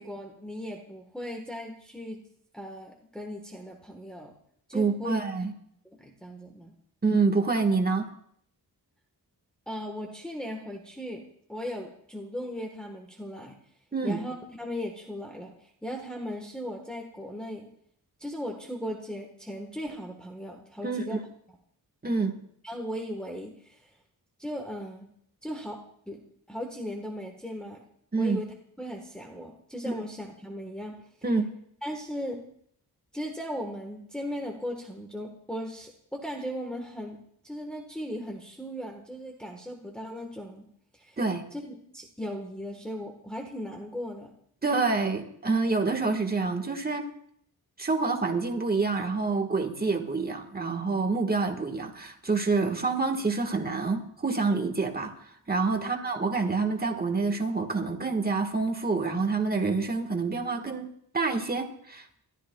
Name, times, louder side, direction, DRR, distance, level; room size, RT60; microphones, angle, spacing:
voice 1, 0.0-2.2 2.5-4.3 4.7-5.2 6.0-6.7 9.7-11.2 11.5-13.6 14.0-17.7 18.2-21.2 22.6-23.9 24.4-25.1 25.4-25.8 26.1-26.2 26.5-27.8 28.2-31.0 31.8-32.4 33.1-37.2 37.4-40.7 40.9-41.2 41.5-44.3 55.8-55.9, equal, ahead, 1 dB, 1.3 m, -37 dB
voice 2, 4.7-5.5 7.0-8.0 13.9-14.2 20.8-21.2 22.0-22.3 28.1-28.4 29.8-29.9 31.2-31.5 41.2-41.4 44.6-47.1 47.8-60.9 61.1-62.1, right 4 dB, 25° right, 4 dB, 1.5 m, -27 dB
29.0 x 13.5 x 2.3 m, 0.67 s
wide cardioid pair, 155°, 38 cm